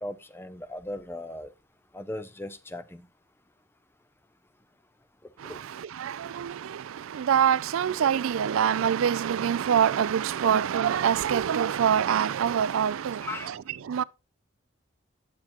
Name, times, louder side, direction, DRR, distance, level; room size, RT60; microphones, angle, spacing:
voice 1, 0.0-1.5 1.9-3.0 5.5-5.6 13.2-13.5, left 1 dB, 10° left, 0.5 m, -37 dB
voice 2, 7.3-13.2 13.9-14.0, right 8 dB, 85° right, 0.4 m, -24 dB
8.9 x 8.4 x 3.0 m
head